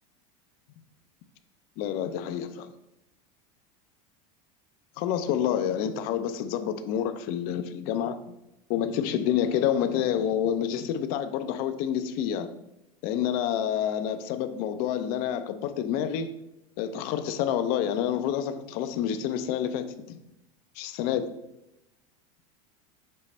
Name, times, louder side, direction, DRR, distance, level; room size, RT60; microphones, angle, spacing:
voice 1, 1.8-2.7 5.0-8.2 8.7-12.5 13.0-16.3 16.8-20.2 20.8-21.3, left 9 dB, 55° left, 10 dB, 0.6 m, -28 dB
7.5 x 3.2 x 4.2 m, 0.88 s
supercardioid pair, 130°, 18 cm